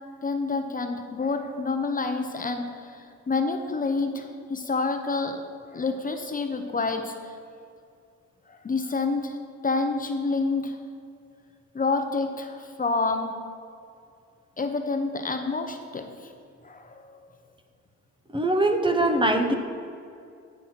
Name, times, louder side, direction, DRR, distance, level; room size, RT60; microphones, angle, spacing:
voice 1, 0.2-5.4 5.7-7.4 8.5-9.4 9.6-10.8 11.7-13.4 14.6-16.3 16.6-17.2, left 3 dB, 30° left, 6 dB, 0.6 m, -28 dB
voice 2, 18.3-19.5, right 1 dB, 15° right, 5 dB, 0.7 m, -22 dB
9.0 x 4.1 x 5.9 m, 2.4 s
cardioid pair, 90°, 30 cm